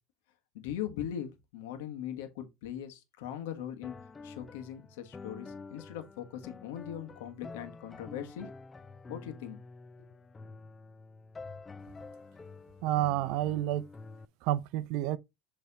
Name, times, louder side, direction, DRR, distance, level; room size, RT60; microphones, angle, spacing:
voice 1, 0.5-3.9 4.2-8.5 9.1-9.6 10.0-10.1, left 10 dB, 85° left, 1.4 m, -40 dB
sound 1, 3.8-14.3, left 4 dB, 20° left, 0.4 m, -48 dB
voice 2, 12.8-13.8 14.4-15.2, right 14 dB, 65° right, 0.5 m, -29 dB
6.8 x 3.4 x 4.1 m
supercardioid pair, 115°, 0 cm